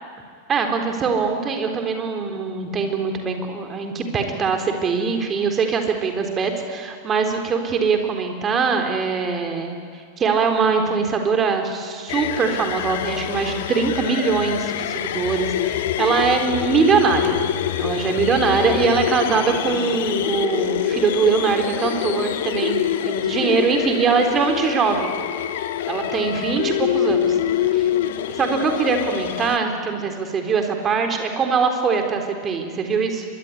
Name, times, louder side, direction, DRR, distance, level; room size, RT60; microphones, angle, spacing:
voice 1, 0.5-9.8 10.2-17.4 17.8-25.1 25.9-27.4 27.7-27.9 28.3-33.2, right 5 dB, 25° right, 5 dB, 3.9 m, -22 dB
sound 1, 12.1-29.6, left 11 dB, 55° left, 1.4 m, -25 dB
25.0 x 22.5 x 10.0 m, 2.1 s
figure-of-eight pair, 90°, 0 cm